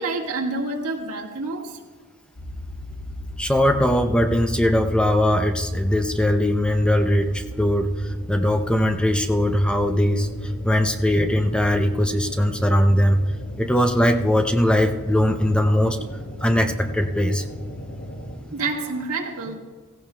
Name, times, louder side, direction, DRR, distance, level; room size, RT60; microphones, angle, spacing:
voice 1, 0.0-1.8 18.4-19.6, right 3 dB, 75° right, -1 dB, 1.7 m, -28 dB
sound 1, 2.4-18.4, equal, 85° left, 2.1 m, -34 dB
voice 2, 3.4-10.3 10.6-13.2 13.6-16.0 16.4-17.4, equal, 5° left, 6 dB, 0.5 m, -20 dB
16.0 x 16.0 x 2.2 m, 1.4 s
head